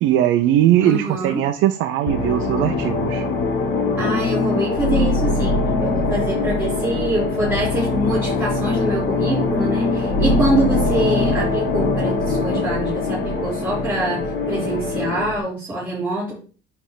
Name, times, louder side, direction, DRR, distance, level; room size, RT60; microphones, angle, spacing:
voice 1, 0.0-3.2, right 12 dB, 75° right, 6 dB, 0.7 m, -19 dB
voice 2, 0.8-1.4 4.0-16.4, right 1 dB, 10° right, -11 dB, 4.0 m, -25 dB
sound 1, 2.1-15.4, left 3 dB, 60° left, 1.6 m, -22 dB
9.8 x 3.5 x 5.0 m, 0.39 s
cardioid pair, 175°, 20 cm